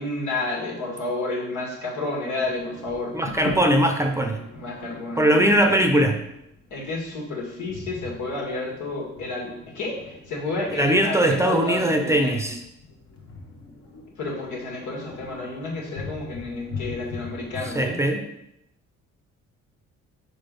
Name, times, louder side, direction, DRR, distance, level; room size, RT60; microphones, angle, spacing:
voice 1, 0.0-3.1 4.5-5.5 6.7-9.5 9.7-12.5 14.2-18.0, left 2 dB, 75° left, -2 dB, 2.1 m, -31 dB
sound 1, 2.3-17.8, left 3 dB, 50° left, 1.3 m, -41 dB
voice 2, 3.1-4.4 5.2-6.2 10.7-12.6 17.6-18.2, right 1 dB, 10° right, 4 dB, 0.7 m, -20 dB
4.8 x 4.1 x 5.2 m, 0.83 s
cardioid pair, 90°, 30 cm